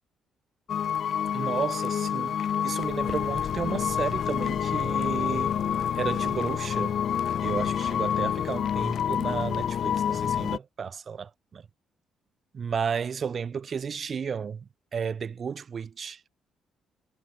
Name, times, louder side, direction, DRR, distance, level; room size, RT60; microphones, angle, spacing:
sound 1, 0.7-10.6, left 9 dB, 60° left, 0.6 m, -28 dB
voice 1, 1.3-5.6 6.0-6.9 7.4-11.7 12.5-16.3, right 6 dB, 45° right, 0.9 m, -33 dB
cardioid pair, 90°, 0 cm